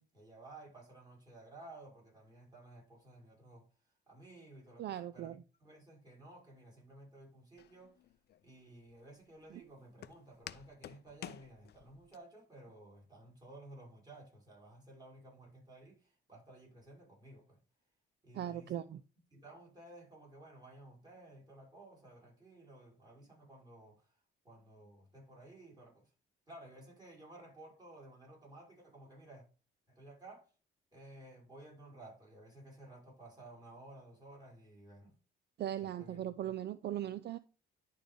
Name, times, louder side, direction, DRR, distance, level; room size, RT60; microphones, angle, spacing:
voice 1, 0.0-3.7 4.1-8.0 8.4-17.6 18.2-18.8 19.3-24.2 24.4-26.1 26.5-29.4 29.9-30.5 30.9-35.1 35.8-36.5, right 2 dB, 20° right, 4.5 m, -55 dB
voice 2, 4.8-5.4 9.5-9.6 18.3-19.0 35.6-37.4, right 11 dB, 60° right, 0.4 m, -39 dB
Walk footsteps, 7.6-12.2, left 11 dB, 55° left, 0.4 m, -52 dB
11.0 x 3.8 x 3.5 m
cardioid pair, 90°, 20 cm